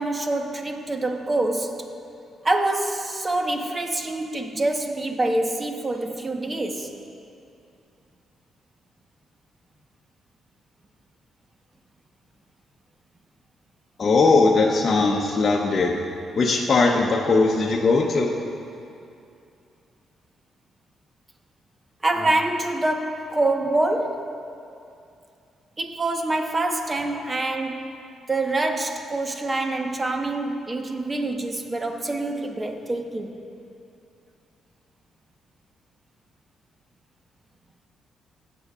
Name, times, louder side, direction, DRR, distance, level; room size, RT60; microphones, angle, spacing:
voice 1, 0.0-1.9 2.4-7.0 22.0-24.4 25.8-27.9 28.3-33.4, right 2 dB, 30° right, 4 dB, 1.1 m, -26 dB
voice 2, 14.0-15.9 16.4-18.4, left 3 dB, 45° left, -1 dB, 0.8 m, -19 dB
17.0 x 7.6 x 2.4 m, 2.6 s
supercardioid pair, 55°, 0 cm